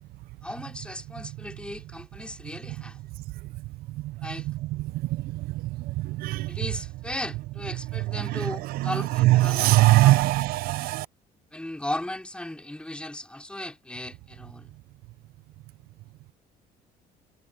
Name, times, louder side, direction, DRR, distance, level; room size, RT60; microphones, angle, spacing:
voice 1, 0.4-3.0 4.2-4.5 6.5-10.3 11.5-14.7, left 1 dB, 5° left, 3.1 m, -36 dB
voice 2, 4.5-6.6 8.1-11.1, right 18 dB, 75° right, 0.5 m, -23 dB
supercardioid pair, 95°, 16 cm